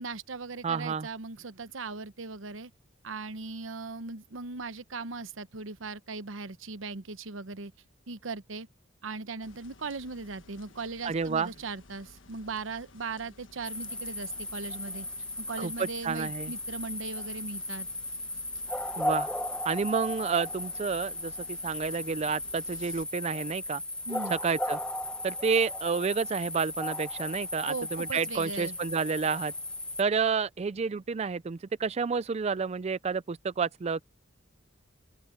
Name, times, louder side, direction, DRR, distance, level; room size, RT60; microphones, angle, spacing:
voice 1, 0.0-2.7 3.0-7.7 8.1-8.7 9.0-15.1 15.4-17.9 24.1-24.4 27.7-28.8, right 4 dB, 80° right, 1.0 m, -38 dB
voice 2, 0.6-1.1 11.0-11.5 15.6-16.5 19.0-19.3 19.6-23.8 24.3-24.8 25.2-29.5 30.0-34.0, right 5 dB, 35° right, 0.4 m, -30 dB
Rubbing my eyelash, 9.4-23.0, left 3 dB, 70° left, 1.4 m, -55 dB
sound 1, 13.6-30.0, left 1 dB, 5° left, 0.9 m, -36 dB
open air
head